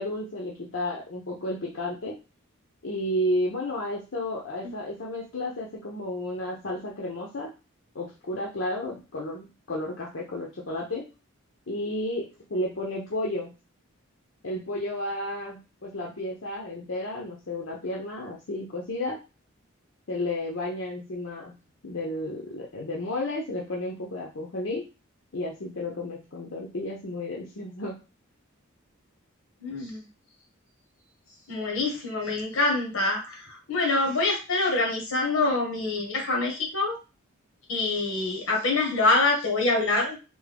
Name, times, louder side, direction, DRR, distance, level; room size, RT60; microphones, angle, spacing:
voice 1, 0.0-2.2 2.8-7.5 7.9-11.0 11.7-13.5 14.4-19.2 20.1-21.5 21.8-24.8 25.3-27.9, left 1 dB, 65° left, -3 dB, 0.7 m, -32 dB
voice 2, 29.6-30.0 31.5-37.0 37.7-40.2, left 2 dB, 85° left, 1 dB, 1.3 m, -25 dB
3.5 x 2.2 x 3.4 m, 0.30 s
head